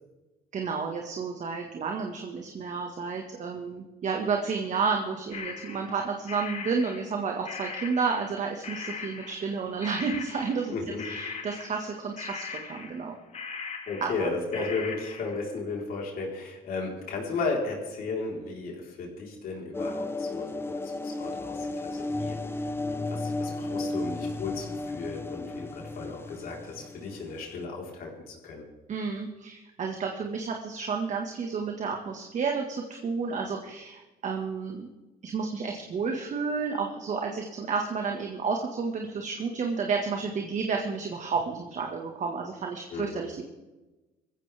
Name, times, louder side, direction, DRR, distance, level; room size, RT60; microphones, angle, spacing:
voice 1, 0.5-10.7 11.0-13.1 14.0-14.3 14.5-14.6 28.9-34.9 35.2-43.4, right 5 dB, 45° right, 2 dB, 1.7 m, -31 dB
sound 1, 5.3-8.4 8.6-9.6 9.8-10.7 11.0-15.5, left 5 dB, 40° left, 1.9 m, -40 dB
voice 2, 10.7-11.0 13.9-20.6 21.0-22.4 22.9-28.6 42.9-43.2, left 3 dB, 60° left, -1 dB, 4.2 m, -34 dB
sound 2, 19.7-27.6, left 2 dB, 15° left, 0.8 m, -34 dB
19.5 x 15.0 x 3.5 m, 1.1 s
cardioid pair, 110°, 17 cm